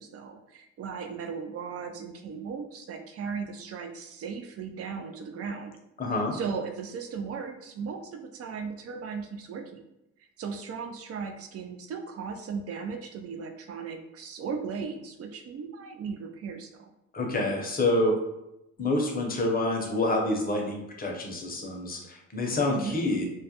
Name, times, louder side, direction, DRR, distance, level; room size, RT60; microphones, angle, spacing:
voice 1, 0.0-5.8 6.1-9.8 10.4-16.9 22.7-23.0, right 5 dB, 50° right, 4 dB, 0.4 m, -37 dB
voice 2, 6.0-6.3 17.1-18.1 18.8-23.2, left 2 dB, 30° left, 1 dB, 0.6 m, -27 dB
2.3 x 2.0 x 2.8 m, 0.89 s
cardioid pair, 90°, 30 cm